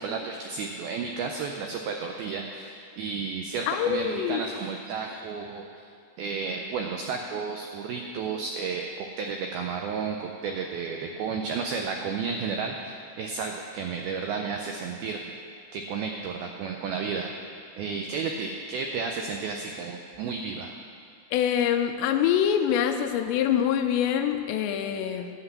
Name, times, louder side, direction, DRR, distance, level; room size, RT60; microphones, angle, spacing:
voice 1, 0.0-5.9 6.2-15.2 15.7-17.3 17.8-20.7, right 5 dB, 85° right, 3 dB, 2.1 m, -32 dB
sound 1, 3.3-5.2, right 1 dB, 65° right, 5.0 m, -50 dB
voice 2, 3.7-4.4 21.3-25.3, left 9 dB, 85° left, 6 dB, 2.8 m, -25 dB
11.0 x 5.9 x 8.0 m, 2.3 s
omnidirectional pair, 5.1 m